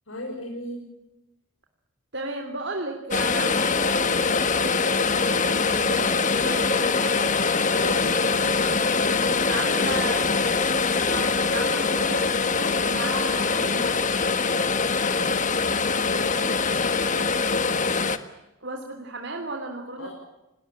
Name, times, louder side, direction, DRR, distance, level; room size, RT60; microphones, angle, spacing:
voice 1, 0.1-0.8 7.7-8.2 15.0-17.4 20.0-20.1, left 1 dB, 75° left, 0 dB, 6.6 m, -38 dB
voice 2, 2.1-7.3 9.3-10.3 11.1-14.2 18.6-20.1, right 2 dB, 55° right, 4 dB, 3.2 m, -35 dB
sound 1, 3.1-18.2, left 4 dB, 35° left, 1.5 m, -23 dB
29.0 x 20.5 x 8.7 m, 0.94 s
head